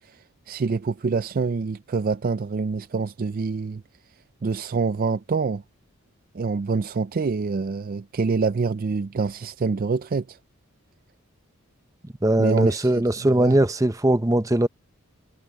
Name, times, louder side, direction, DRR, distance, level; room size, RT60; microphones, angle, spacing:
voice 1, 0.5-3.8 4.4-5.6 6.3-10.4 12.4-13.6, right 4 dB, 40° right, 0.4 m, -26 dB
voice 2, 12.2-14.7, right 1 dB, 15° right, 0.8 m, -20 dB
head